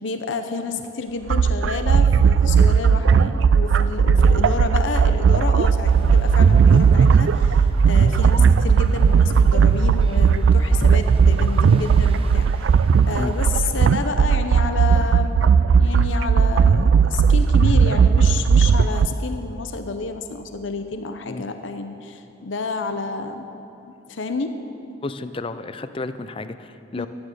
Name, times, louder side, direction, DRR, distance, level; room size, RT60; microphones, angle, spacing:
voice 1, 0.0-12.8 13.1-15.5 15.8-23.5 23.8-24.6 26.9-27.1, left 4 dB, 85° left, 7 dB, 0.7 m, -29 dB
sound 1, 1.3-19.1, right 6 dB, 75° right, 0.3 m, -16 dB
sound 2, 5.8-13.8, right 1 dB, 30° right, 0.7 m, -40 dB
voice 2, 25.0-27.1, left 2 dB, 30° left, 11 dB, 0.4 m, -32 dB
14.0 x 9.8 x 6.6 m, 2.8 s
head